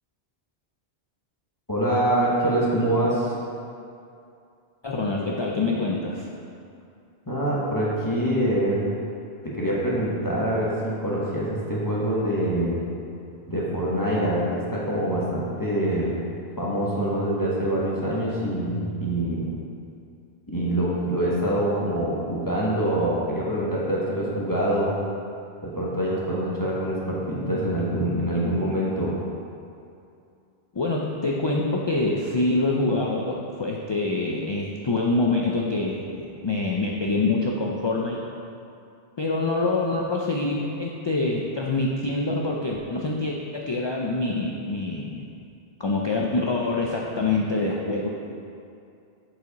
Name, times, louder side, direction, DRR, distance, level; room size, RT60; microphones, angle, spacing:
voice 1, 1.7-3.3 7.3-8.9 9.4-12.8 13.5-16.1 16.6-19.4 20.5-24.9 25.6-29.2, right 1 dB, 20° left, -7 dB, 1.0 m, -25 dB
voice 2, 4.8-6.3 30.7-38.2 39.2-45.2 45.8-48.1, left 2 dB, 45° left, -1 dB, 0.3 m, -25 dB
7.4 x 4.8 x 4.0 m, 2.5 s
omnidirectional pair, 1.1 m